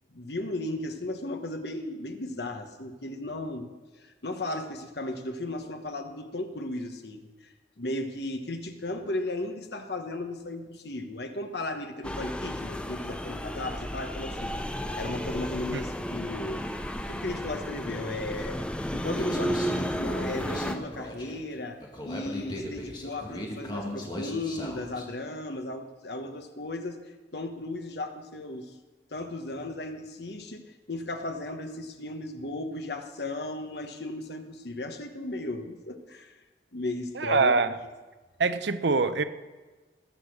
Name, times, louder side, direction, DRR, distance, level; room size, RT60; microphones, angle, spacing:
voice 1, 0.1-3.7 4.0-14.5 15.0-16.6 17.1-18.6 18.9-27.0 27.3-28.7 29.1-36.3 36.7-37.5, left 2 dB, 65° left, 6 dB, 1.2 m, -35 dB
sound 1, 12.0-20.7, equal, 5° left, 0.4 m, -33 dB
Human voice, 19.0-25.0, left 1 dB, 25° left, 1.8 m, -38 dB
voice 2, 37.1-37.8 38.4-39.2, right 4 dB, 75° right, 11 dB, 0.7 m, -24 dB
19.5 x 6.5 x 6.4 m, 1.3 s
head